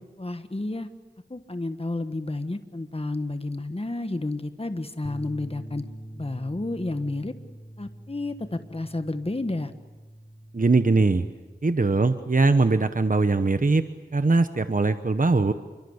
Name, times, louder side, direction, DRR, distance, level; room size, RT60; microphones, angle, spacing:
voice 1, 0.2-0.9 1.3-5.8 6.1-7.3 7.8-9.7, left 2 dB, 35° left, 9 dB, 1.5 m, -31 dB
sound 1, 5.0-11.3, right 1 dB, 5° right, 2.0 m, -44 dB
voice 2, 10.5-11.2 11.6-13.8 14.1-15.5, right 3 dB, 50° right, 10 dB, 1.1 m, -21 dB
27.5 x 24.5 x 8.1 m, 1.2 s
wide cardioid pair, 50°, 17 cm